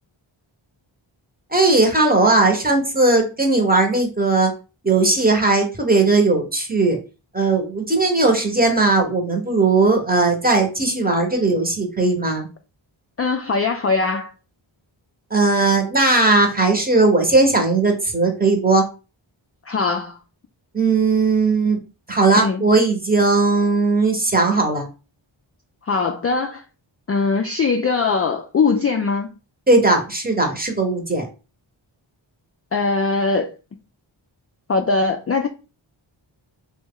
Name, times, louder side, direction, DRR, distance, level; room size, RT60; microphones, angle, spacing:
voice 1, 1.5-4.5 4.8-7.0 7.3-12.5 15.3-18.8 20.7-21.8 22.1-24.9 29.7-31.3, right 3 dB, 20° right, 1.0 m, -18 dB
voice 2, 13.2-14.3 19.7-20.2 22.4-22.6 25.8-26.6 27.1-29.3 32.7-33.5 34.7-35.5, left 4 dB, 35° left, 0.4 m, -21 dB
3.0 x 2.3 x 3.6 m
cardioid pair, 50°, 48 cm